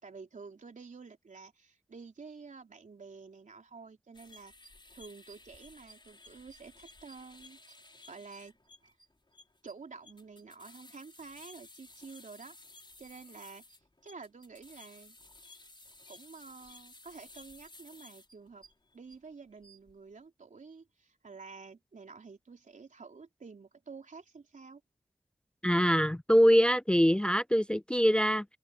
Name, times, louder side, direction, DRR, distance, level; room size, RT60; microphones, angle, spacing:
voice 1, 0.0-4.5 4.9-7.6 7.9-8.5 8.8-8.9 9.6-12.6 13.0-13.6 14.0-15.2 16.1-18.6 18.9-24.8, right 4 dB, 85° right, 3.9 m, -50 dB
sound 1, 4.1-19.2 19.5-19.9, left 2 dB, 40° left, 4.7 m, -55 dB
voice 2, 25.6-28.5, equal, 5° left, 0.3 m, -24 dB
open air
wide cardioid pair, 50°, 13 cm